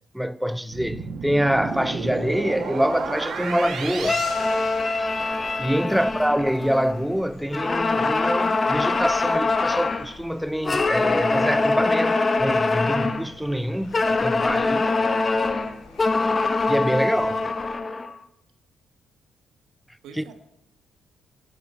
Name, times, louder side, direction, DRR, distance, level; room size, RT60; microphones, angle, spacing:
voice 1, 0.1-4.2 5.6-14.9 16.7-17.4 20.2-20.3, equal, ahead, 0.5 m, -25 dB
sound 1, 0.7-5.5, right 4 dB, 60° right, 1.7 m, -32 dB
sound 2, 1.6-17.7, left 2 dB, 85° left, 3.3 m, -47 dB
sound 3, 4.0-7.1 7.5-10.1 10.6-13.3 13.9-18.1, left 3 dB, 30° left, 0.8 m, -23 dB
voice 2, 5.9-6.2 16.9-17.5 20.0-20.3, right 5 dB, 85° right, 1.8 m, -44 dB
9.3 x 8.3 x 5.7 m
cardioid pair, 90°, 0 cm